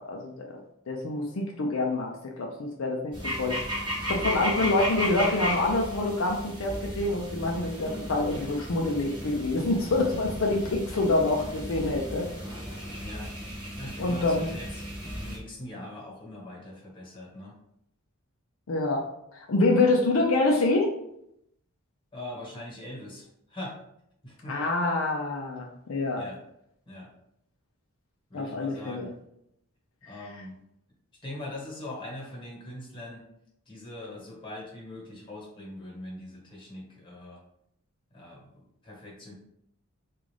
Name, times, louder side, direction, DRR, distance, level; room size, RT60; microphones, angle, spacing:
voice 1, 0.1-0.6 0.9-12.3 14.0-14.5 18.7-19.0 19.3-20.9 24.5-26.2 28.3-29.1 30.0-30.1, left 2 dB, 70° left, 0 dB, 0.5 m, -26 dB
sound 1, 3.1-15.4, equal, 20° right, 1.0 m, -35 dB
voice 2, 13.0-13.3 13.7-17.6 22.1-23.8 24.2-24.6 26.1-26.4 26.9-27.1 28.3-29.1 30.0-30.6 31.2-33.2 33.7-37.4 38.1-39.3, left 1 dB, 25° left, -3 dB, 1.2 m, -42 dB
3.7 x 2.4 x 3.3 m, 0.77 s
head